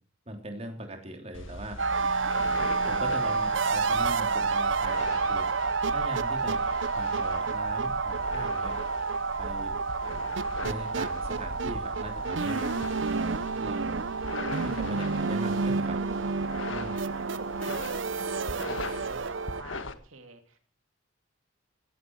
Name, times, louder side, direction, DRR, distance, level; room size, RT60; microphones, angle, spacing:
voice 1, 0.3-1.8 2.9-5.5 5.9-6.6 6.9-8.8 9.4-9.8 10.6-12.7 13.1-14.0 14.6-16.0 16.7-17.0, right 1 dB, 30° right, 4 dB, 3.3 m, -40 dB
sound 1, 1.3-19.9, left 2 dB, 70° left, 1.7 m, -41 dB
sound 2, 1.8-19.6, right 4 dB, 65° right, 0.7 m, -29 dB
voice 2, 16.6-20.6, right 3 dB, 85° right, 6 dB, 2.9 m, -49 dB
17.0 x 16.0 x 4.7 m, 0.42 s
head